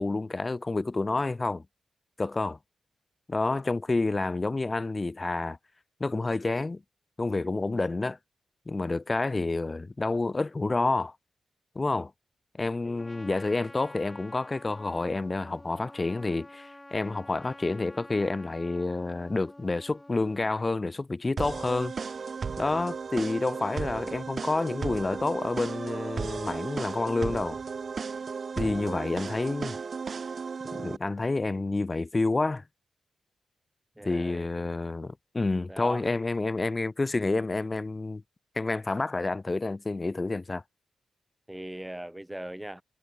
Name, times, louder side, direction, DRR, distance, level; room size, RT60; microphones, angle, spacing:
voice 1, 0.0-1.6 2.2-2.6 3.3-5.6 6.0-6.8 7.2-8.2 8.7-11.1 11.7-12.1 12.6-21.9 22.6-27.6 28.6-29.8 30.7-32.6 34.0-38.2 38.5-40.6, left 3 dB, 30° left, 1.5 m, -29 dB
Trumpet, 13.0-20.6, left 1 dB, 15° left, 7.8 m, -49 dB
sound 1, 21.4-31.0, right 5 dB, 60° right, 1.3 m, -35 dB
voice 2, 34.0-34.5 35.7-36.2 41.5-42.8, right 1 dB, 10° right, 4.5 m, -40 dB
cardioid pair, 50°, 0 cm